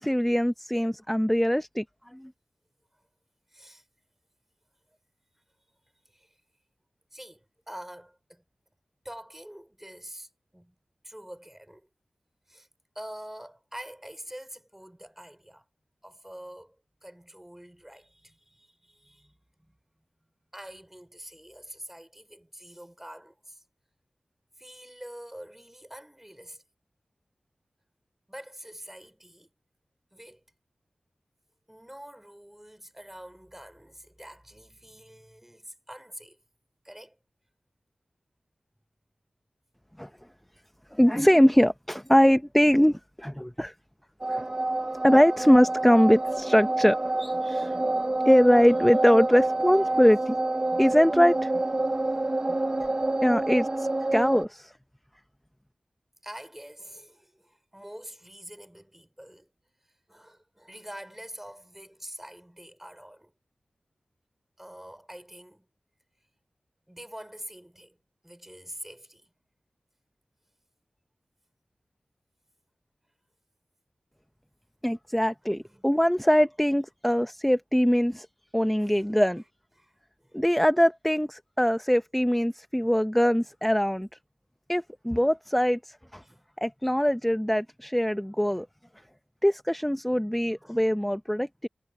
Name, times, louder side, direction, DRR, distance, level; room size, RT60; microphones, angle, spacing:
voice 1, 0.0-1.8 2.1-2.3 40.0-40.1 40.9-43.7 44.3-44.4 45.0-47.8 48.2-50.4 50.8-51.5 53.2-54.7 74.8-78.3 78.5-79.4 80.3-84.1 84.7-86.2 86.6-88.7 89.4-91.7, equal, 5° left, 0.8 m, -22 dB
voice 2, 3.5-3.8 5.3-6.4 7.1-8.4 9.0-10.8 11.0-11.9 12.5-12.7 12.9-15.7 16.0-16.8 17.0-19.8 20.5-23.6 24.6-26.6 28.3-29.5 30.1-30.4 31.7-36.4 36.8-37.2 49.6-50.1 51.9-52.3 56.2-59.5 59.8-63.3 64.6-65.7 66.9-68.0 68.2-69.3 75.6-76.1 78.8-79.1 79.8-80.4 86.2-86.4 90.6-90.9, equal, 10° right, 4.2 m, -46 dB
sound 1, 44.2-54.5, right 2 dB, 30° right, 0.7 m, -28 dB
cardioid pair, 40°, 3 cm